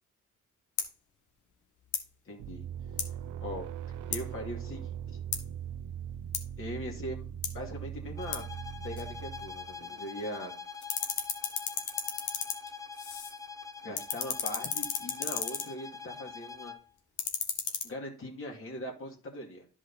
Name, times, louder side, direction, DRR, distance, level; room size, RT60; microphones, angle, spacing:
wind up toy, 0.8-0.9 1.8-2.1 3.0-3.1 4.1-4.3 5.3-5.5 6.3-6.5 7.4-7.6 8.3-8.4 9.0-9.1 9.8-10.5 10.7-13.4 13.7-15.7 17.0-17.8, left 7 dB, 80° left, 1.6 m, -35 dB
voice 1, 2.2-2.6 3.4-3.7 4.1-5.2 6.6-8.4 8.8-10.5 13.8-16.7 17.8-19.7, equal, 45° left, 0 dB, 2.4 m, -40 dB
sound 1, 2.4-9.8, right 9 dB, 80° right, 0.6 m, -40 dB
sound 2, 8.2-16.9, left 5 dB, 10° left, 0.6 m, -44 dB
11.0 x 5.0 x 4.1 m, 0.38 s
cardioid pair, 90°, 30 cm